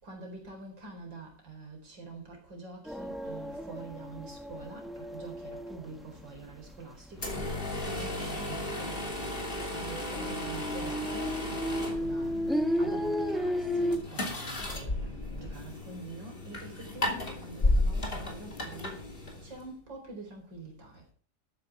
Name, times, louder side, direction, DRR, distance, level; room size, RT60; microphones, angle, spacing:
voice 1, 0.0-9.1 9.7-12.5 12.8-21.1, right 3 dB, 80° right, 5.0 m, -46 dB
sound 1, 2.8-6.8 7.1-7.7 8.1-8.2 8.5-14.0, equal, ahead, 0.8 m, -33 dB
sound 2, 7.1-19.7, left 1 dB, 30° left, 3.0 m, -34 dB
13.0 x 9.6 x 4.7 m
omnidirectional pair, 1.9 m